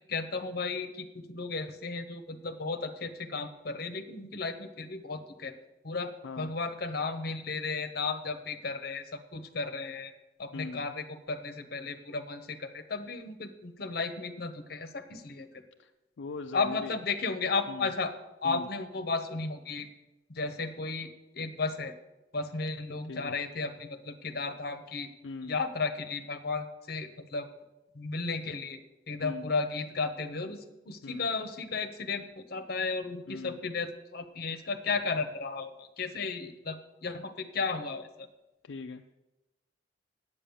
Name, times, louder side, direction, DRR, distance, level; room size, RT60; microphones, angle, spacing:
voice 1, 0.1-5.5 5.8-10.1 10.4-15.5 16.5-18.1 18.4-19.9 20.3-21.1 21.3-21.9 22.3-25.1 25.5-27.5 27.9-28.8 29.1-38.3, left 4 dB, 55° left, 8 dB, 1.0 m, -34 dB
voice 2, 6.2-6.6 10.5-10.9 15.8-15.9 16.2-16.9 17.7-17.9 18.4-18.7 23.1-23.4 25.2-25.6 29.2-29.5 31.0-31.3 33.3-33.6 38.6-39.1, left 3 dB, 70° left, 6 dB, 0.4 m, -40 dB
8.9 x 8.5 x 7.0 m, 1.0 s
head